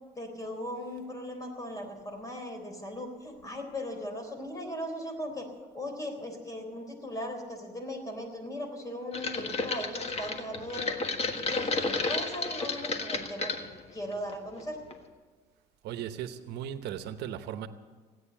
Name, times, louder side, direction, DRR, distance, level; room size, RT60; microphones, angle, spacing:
voice 1, 0.2-5.5 5.7-10.9 11.3-14.8, left 1 dB, 20° left, 4 dB, 3.7 m, -38 dB
sound 1, 9.1-13.6 14.1-14.6 14.9-15.0, left 3 dB, 40° left, 1.5 m, -32 dB
voice 2, 15.8-17.7, right 10 dB, 80° right, 10 dB, 0.9 m, -37 dB
16.5 x 9.4 x 8.8 m, 1.4 s
cardioid pair, 110°, 17 cm